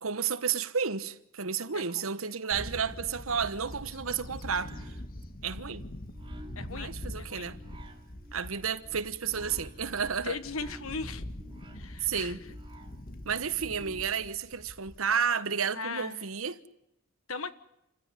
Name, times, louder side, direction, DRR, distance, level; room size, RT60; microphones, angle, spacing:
voice 1, 0.0-4.9 5.4-5.8 6.7-7.6 8.3-10.4 12.0-12.4 13.2-16.6, right 6 dB, 85° right, 1.2 m, -32 dB
Bird / Wind, 2.5-15.3, left 1 dB, 45° left, 1.7 m, -44 dB
sound 1, 4.3-14.3, right 1 dB, 25° right, 2.7 m, -54 dB
voice 2, 6.5-6.9 7.2-7.5 10.2-11.2 11.7-12.3 15.8-16.2 17.3-17.5, left 4 dB, 85° left, 1.4 m, -37 dB
28.0 x 16.0 x 9.9 m
head